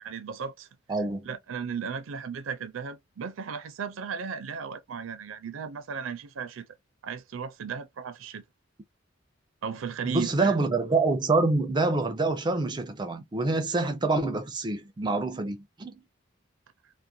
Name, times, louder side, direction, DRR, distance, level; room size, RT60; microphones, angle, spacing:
voice 1, 0.0-0.7 1.3-6.7 7.0-8.4 9.6-10.6, right 6 dB, 80° right, 0.4 m, -35 dB
voice 2, 0.9-1.3 10.0-15.9, right 3 dB, 20° right, 0.4 m, -26 dB
2.4 x 2.1 x 2.6 m
head